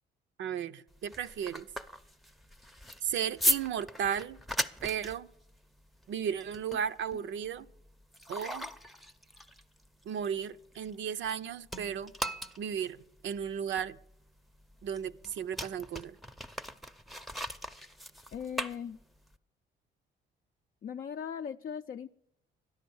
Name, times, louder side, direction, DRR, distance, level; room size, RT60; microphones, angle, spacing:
voice 1, 0.4-1.7 3.0-4.4 4.8-5.3 6.1-7.7 8.3-8.7 10.1-12.1 12.6-13.0 13.2-14.0 14.8-16.2, right 8 dB, 70° right, 0.6 m, -34 dB
sound 1, 0.9-11.4 11.7-19.4, equal, ahead, 0.6 m, -38 dB
voice 2, 18.3-19.0 20.8-22.1, left 7 dB, 45° left, 0.4 m, -39 dB
13.0 x 10.5 x 7.0 m
cardioid pair, 90°, 20 cm